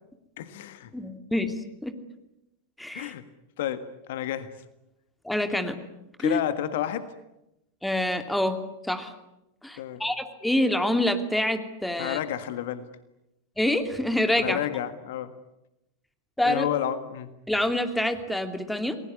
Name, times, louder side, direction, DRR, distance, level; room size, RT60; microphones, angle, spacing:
voice 1, 0.4-0.9 2.9-3.2 3.6-4.5 6.2-7.1 9.8-10.0 12.0-12.8 14.4-15.3 16.4-17.3, left 11 dB, 55° left, 12 dB, 1.6 m, -30 dB
voice 2, 0.9-1.6 1.8-1.9 2.8-3.1 5.2-5.8 6.2-6.4 7.8-8.6 8.9-9.1 9.6-12.2 13.6-14.6 16.4-16.7 17.5-19.0, left 1 dB, 5° left, 8 dB, 2.8 m, -26 dB
29.0 x 20.5 x 9.7 m, 0.91 s
figure-of-eight pair, 90°, 0 cm